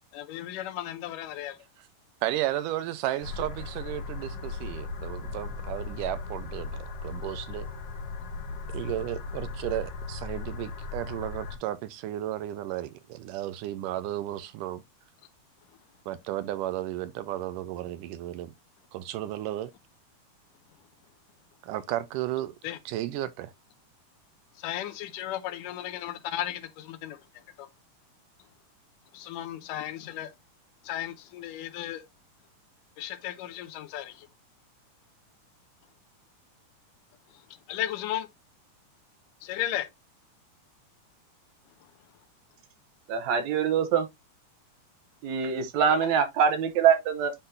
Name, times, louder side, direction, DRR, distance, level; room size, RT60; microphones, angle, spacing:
voice 1, 0.1-1.6 22.6-22.8 24.6-27.2 27.6-27.7 29.1-30.3 30.8-32.0 33.0-34.3 37.7-38.3 39.4-39.9 45.9-46.0, left 12 dB, 85° left, 2.3 m, -35 dB
voice 2, 2.2-7.7 8.7-14.8 16.1-18.5 18.9-19.7 21.6-22.6 22.9-23.5, right 13 dB, 85° right, 2.2 m, -33 dB
sound 1, 3.2-11.6, left 4 dB, 65° left, 3.1 m, -37 dB
voice 3, 43.1-44.1 45.2-47.3, right 7 dB, 70° right, 2.0 m, -24 dB
10.0 x 3.8 x 2.6 m
omnidirectional pair, 3.7 m